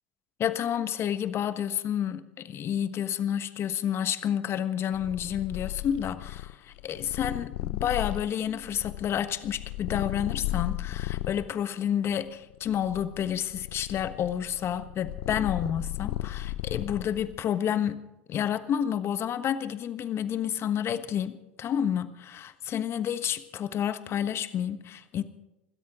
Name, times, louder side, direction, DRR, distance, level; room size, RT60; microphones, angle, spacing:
voice 1, 0.4-18.0 18.3-25.2, left 9 dB, 40° left, 1.3 m, -30 dB
Purr, 4.9-11.5 12.1-17.4, left 16 dB, 65° left, 0.7 m, -35 dB
26.5 x 13.0 x 3.8 m
hypercardioid pair, 80°, 7 cm